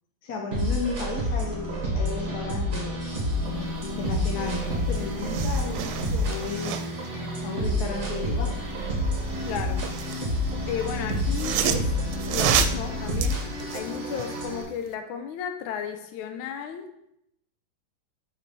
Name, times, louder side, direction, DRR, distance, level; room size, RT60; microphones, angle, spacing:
voice 1, 0.2-6.8 7.4-8.6, left 4 dB, 60° left, 1.3 m, -34 dB
sound 1, 0.5-14.6, equal, 40° right, 1.7 m, -29 dB
sound 2, 4.5-4.6 4.8-7.1 9.2-10.3 11.1-14.5 14.9-15.0, right 10 dB, 85° right, 1.4 m, -30 dB
voice 2, 9.4-9.9 10.7-12.0 12.3-13.4 13.7-16.9, left 8 dB, 80° left, 1.4 m, -34 dB
7.9 x 4.3 x 4.0 m
omnidirectional pair, 2.3 m